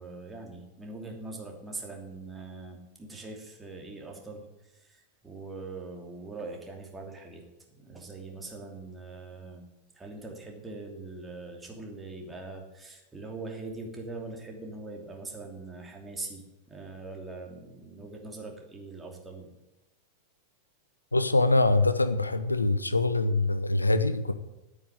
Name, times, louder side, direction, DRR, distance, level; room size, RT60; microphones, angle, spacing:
voice 1, 0.0-4.4 4.9-7.4 7.8-9.6 10.0-19.5, right 3 dB, 10° right, 1 dB, 2.8 m, -42 dB
voice 2, 21.1-24.3, left 2 dB, 80° left, 11 dB, 0.9 m, -24 dB
9.2 x 9.1 x 9.2 m, 0.96 s
figure-of-eight pair, 90°, 0 cm